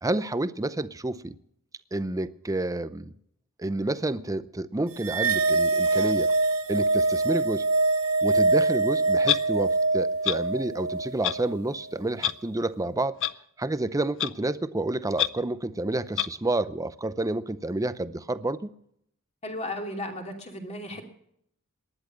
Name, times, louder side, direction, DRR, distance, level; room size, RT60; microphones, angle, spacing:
voice 1, 0.0-1.3 1.9-3.1 3.6-6.3 6.7-7.6 8.2-13.1 13.6-18.7, right 2 dB, 15° right, 0.6 m, -29 dB
sound 1, 5.0-11.6, right 3 dB, 70° right, 0.9 m, -24 dB
Clock, 9.3-9.4 10.2-10.4 11.2-11.4 12.2-12.3 13.2-13.3 14.2-14.3 15.2-15.3 16.2-16.3, left 11 dB, 60° left, 0.6 m, -25 dB
voice 2, 19.4-21.0, left 1 dB, 30° left, 2.9 m, -35 dB
18.5 x 11.0 x 6.3 m
head